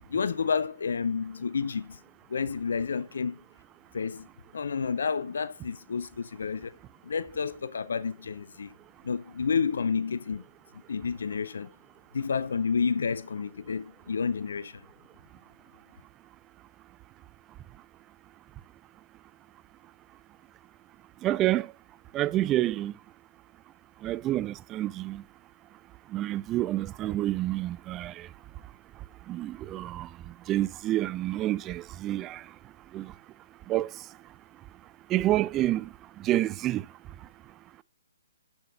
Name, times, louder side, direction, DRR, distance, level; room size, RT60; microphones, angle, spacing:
voice 1, 0.1-2.0 2.3-3.4 3.9-4.3 4.5-6.7 7.0-8.7 9.0-10.4 10.9-11.7 12.1-14.8, left 5 dB, 70° left, 0.5 m, -30 dB
voice 2, 21.2-21.7 22.1-22.9 24.0-25.2 26.1-28.3 29.3-32.5 32.9-33.1 33.7-34.0 35.1-35.9 36.2-36.9, right 14 dB, 20° right, 0.3 m, -28 dB
7.6 x 7.1 x 3.8 m
figure-of-eight pair, 130°, 0 cm